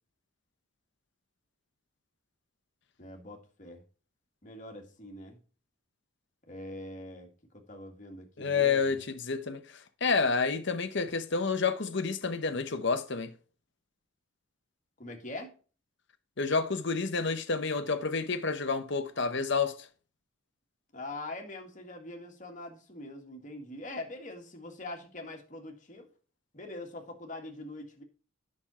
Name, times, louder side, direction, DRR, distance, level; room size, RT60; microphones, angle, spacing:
voice 1, 3.0-3.8 4.4-5.4 6.5-7.3 7.7-9.0 15.0-15.5 20.9-26.1 26.5-28.0, left 2 dB, 40° left, 2.0 m, -43 dB
voice 2, 8.4-9.6 10.0-13.3 16.4-19.8, left 4 dB, 60° left, 1.0 m, -29 dB
9.7 x 6.4 x 4.3 m
head